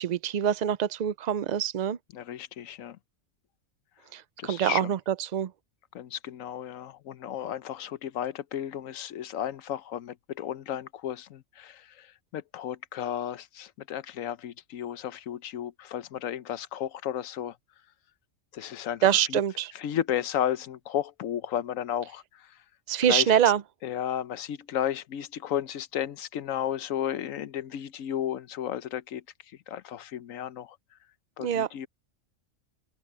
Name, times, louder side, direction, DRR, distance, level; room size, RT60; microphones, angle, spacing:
voice 1, 0.0-2.0 4.1-5.5 19.0-19.7 22.9-23.6 31.4-31.7, right 9 dB, 70° right, 0.4 m, -25 dB
voice 2, 2.1-3.0 4.4-4.9 5.9-17.6 18.5-19.4 19.7-22.6 23.1-23.4 23.8-29.2 29.7-30.8 31.4-31.9, left 10 dB, 85° left, 1.1 m, -33 dB
omnidirectional pair, 1.3 m